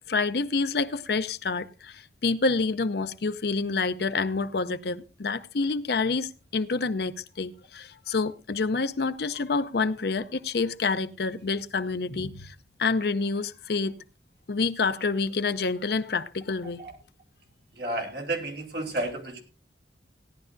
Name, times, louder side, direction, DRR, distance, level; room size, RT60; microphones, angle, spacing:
voice 1, 0.1-14.0 14.5-16.8, left 4 dB, 65° left, 0.6 m, -28 dB
voice 2, 17.8-19.4, right 1 dB, 65° right, 3.1 m, -31 dB
17.0 x 11.0 x 2.6 m
head